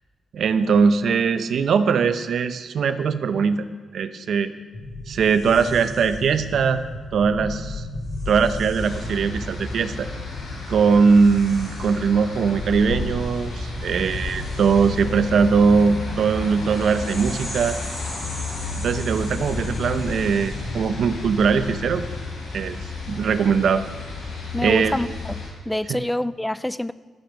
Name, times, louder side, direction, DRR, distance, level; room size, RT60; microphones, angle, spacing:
voice 1, 0.3-3.6 3.9-4.5 5.1-6.8 7.1-7.8 8.3-10.1 10.7-17.7 18.8-22.0 22.5-22.8 23.1-23.8 24.6-24.9 25.9-26.0, right 5 dB, 55° right, 11 dB, 0.9 m, -20 dB
sound 1, 4.7-22.3, left 1 dB, 35° left, 5.6 m, -35 dB
sound 2, 8.8-25.5, left 2 dB, 50° left, 6.0 m, -32 dB
voice 2, 24.5-26.9, left 1 dB, 5° left, 16 dB, 0.3 m, -26 dB
15.5 x 13.5 x 6.6 m, 1.4 s
wide cardioid pair, 170°, 0 cm